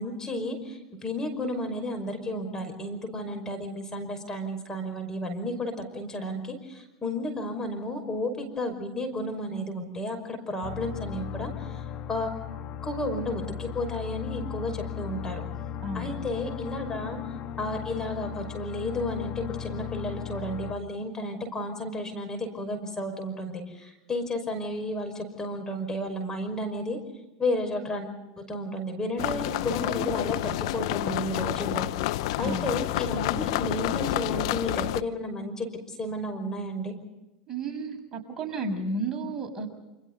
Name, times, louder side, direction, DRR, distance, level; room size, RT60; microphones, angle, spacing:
voice 1, 0.0-11.8 12.1-12.3 12.8-15.4 15.9-17.2 17.6-27.0 27.4-36.9, left 1 dB, 20° left, 4 dB, 5.6 m, -32 dB
sound 1, 10.6-20.7, left 9 dB, 45° left, 2.2 m, -37 dB
voice 2, 15.8-16.2 32.4-32.7 37.5-39.7, right 2 dB, 25° right, 2 dB, 6.8 m, -32 dB
sound 2, 29.2-35.0, left 16 dB, 65° left, 0.8 m, -29 dB
29.0 x 27.5 x 4.1 m, 1.0 s
hypercardioid pair, 90°, 3 cm